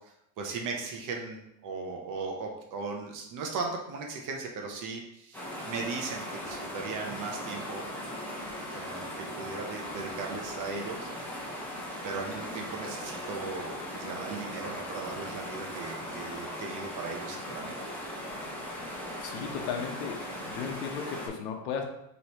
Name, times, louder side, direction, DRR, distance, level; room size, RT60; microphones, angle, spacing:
voice 1, 0.4-7.8 8.7-11.1 12.0-17.8, right 4 dB, 45° right, 1 dB, 0.7 m, -37 dB
sound 1, 5.3-21.3, equal, 5° left, 0.9 m, -38 dB
voice 2, 19.2-20.2 20.4-21.8, left 6 dB, 75° left, 2 dB, 1.0 m, -35 dB
4.9 x 3.1 x 2.9 m, 0.81 s
cardioid pair, 135°, 45 cm